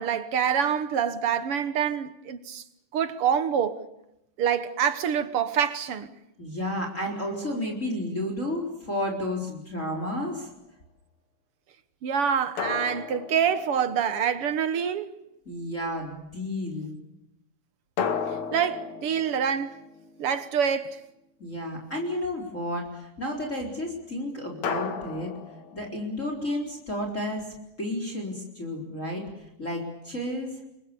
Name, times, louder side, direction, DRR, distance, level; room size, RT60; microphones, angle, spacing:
voice 1, 0.0-2.6 2.9-3.8 4.4-6.1 12.0-15.1 18.5-19.8 20.2-21.0, right 8 dB, 60° right, 1.7 m, -26 dB
voice 2, 6.4-10.5 15.5-16.9 21.4-25.3 25.7-27.5 27.8-29.3 29.6-30.6, left 1 dB, 20° left, 4.4 m, -31 dB
sound 1, 9.9-10.5 12.6-14.4 18.0-20.6 24.6-26.3, left 6 dB, 60° left, 2.9 m, -35 dB
29.0 x 23.0 x 6.9 m
omnidirectional pair, 3.7 m